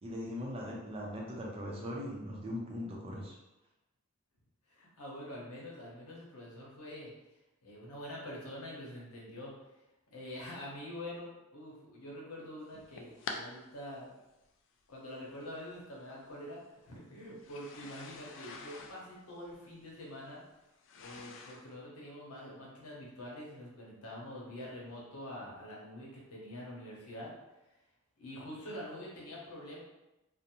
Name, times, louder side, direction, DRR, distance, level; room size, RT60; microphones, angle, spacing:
voice 1, 0.0-3.4, left 1 dB, 25° right, -2 dB, 0.5 m, -40 dB
voice 2, 4.7-7.1 7.6-9.5 10.1-14.1 14.9-20.4 20.9-27.3 28.2-29.8, left 1 dB, 85° left, -4 dB, 0.8 m, -45 dB
sound 1, 12.7-13.4 14.4-14.5 15.7-15.8 17.4-21.7, left 4 dB, 60° left, 0.3 m, -46 dB
2.5 x 2.0 x 2.9 m, 0.97 s
head